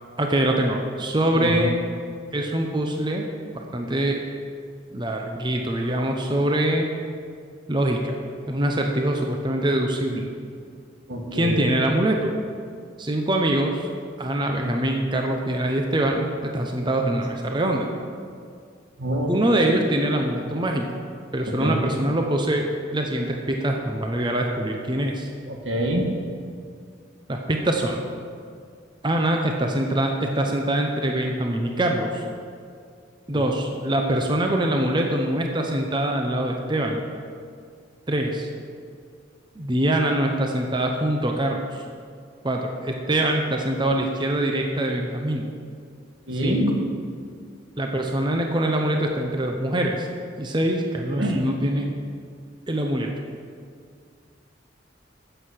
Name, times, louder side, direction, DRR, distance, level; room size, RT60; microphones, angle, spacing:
voice 1, 0.2-1.7 2.3-3.3 3.5-4.2 4.9-6.9 7.7-8.2 8.5-10.3 11.3-12.3 13.0-13.9 14.2-17.9 19.3-20.9 21.3-25.3 27.3-28.0 29.0-32.2 33.3-37.0 38.1-38.5 39.6-41.8 42.4-45.5 46.4-46.6 47.8-50.1 50.4-51.9 52.7-53.1, right 1 dB, 25° right, 2 dB, 0.7 m, -24 dB
voice 2, 1.3-1.7 11.1-11.7 19.0-19.3 21.5-21.8 25.5-26.1 33.3-33.4 46.3-46.8 51.2-51.4, equal, 80° right, 1 dB, 1.6 m, -26 dB
9.9 x 7.9 x 6.5 m, 2.3 s
head